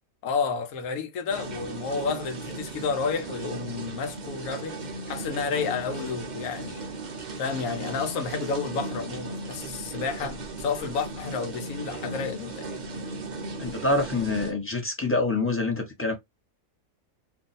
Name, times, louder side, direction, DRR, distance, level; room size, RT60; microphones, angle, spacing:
voice 1, 0.2-4.8 5.1-6.9 7.4-12.8, left 5 dB, 80° left, 1.1 m, -31 dB
sound 1, 1.3-14.5, right 3 dB, 50° right, 0.5 m, -37 dB
voice 2, 13.6-16.1, left 2 dB, 10° left, 0.7 m, -26 dB
2.6 x 2.5 x 3.9 m
omnidirectional pair, 1.5 m